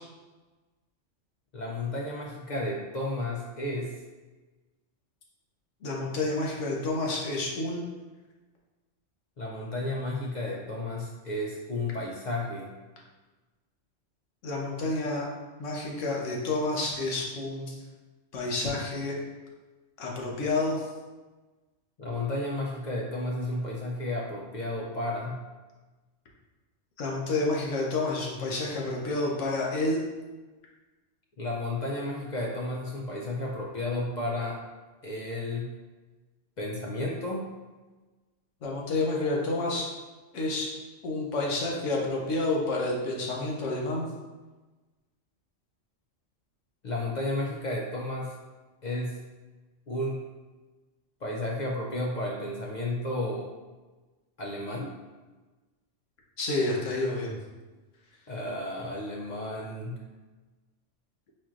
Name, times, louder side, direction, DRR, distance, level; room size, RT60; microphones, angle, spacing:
voice 1, 1.5-4.0 9.4-12.7 22.0-25.4 31.4-34.6 35.0-35.7 36.6-37.5 46.8-48.3 48.8-49.2 49.9-50.2 51.2-53.5 54.4-54.9 58.3-60.0, left 1 dB, 55° left, -2 dB, 0.5 m, -32 dB
voice 2, 5.8-7.8 14.4-15.3 15.6-17.8 18.3-19.2 20.0-20.9 27.0-30.0 38.6-39.9 40.3-40.7 41.0-44.1 56.4-57.3, left 2 dB, 80° left, -2 dB, 1.2 m, -29 dB
4.4 x 4.3 x 2.4 m, 1.2 s
omnidirectional pair, 1.2 m